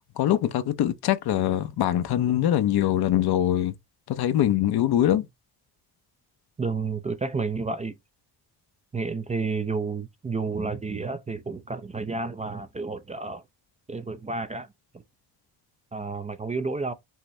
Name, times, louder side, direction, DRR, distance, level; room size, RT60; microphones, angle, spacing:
voice 1, 0.2-3.7 4.1-5.3, left 11 dB, 65° left, 0.7 m, -23 dB
voice 2, 6.6-8.0 8.9-13.4 13.9-14.7 14.9-15.0 15.9-16.9, right 4 dB, 20° right, 0.4 m, -30 dB
5.6 x 2.6 x 3.1 m
cardioid pair, 105°, 40 cm